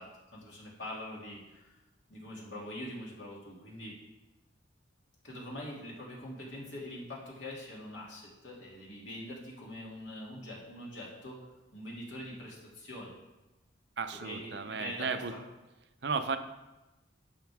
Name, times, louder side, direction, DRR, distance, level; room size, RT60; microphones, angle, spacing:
voice 1, 0.0-1.8 2.1-4.0 5.2-13.1 14.1-15.4, left 1 dB, 70° left, -4 dB, 2.6 m, -44 dB
voice 2, 14.0-15.3 16.0-16.4, right 5 dB, 60° right, 9 dB, 0.6 m, -34 dB
11.5 x 7.2 x 3.5 m, 1.0 s
head